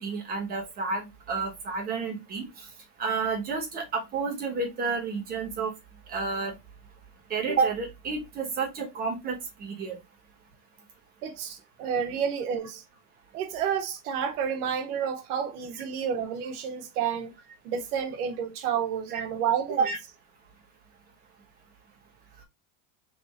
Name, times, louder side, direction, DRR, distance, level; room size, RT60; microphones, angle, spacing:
voice 1, 0.0-2.4 3.0-5.7 6.1-6.5 7.3-10.0 19.1-19.2 19.8-20.0, right 4 dB, 20° right, 1.2 m, -30 dB
voice 2, 11.2-12.8 13.3-17.3 17.6-19.8, right 8 dB, 70° right, 1.2 m, -30 dB
3.5 x 2.8 x 4.0 m
supercardioid pair, 170°, 46 cm